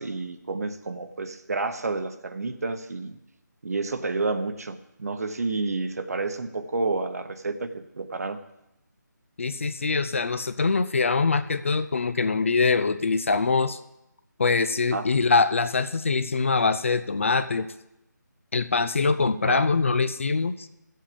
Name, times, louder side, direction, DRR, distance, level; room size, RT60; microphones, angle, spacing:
voice 1, 0.0-3.2 3.6-8.4 14.9-15.1 19.5-19.6, right 3 dB, 55° right, 10 dB, 1.1 m, -30 dB
voice 2, 9.4-13.8 14.4-17.7 18.5-20.7, left 4 dB, 40° left, 12 dB, 0.6 m, -23 dB
15.5 x 7.7 x 5.1 m, 0.87 s
figure-of-eight pair, 170°, 10 cm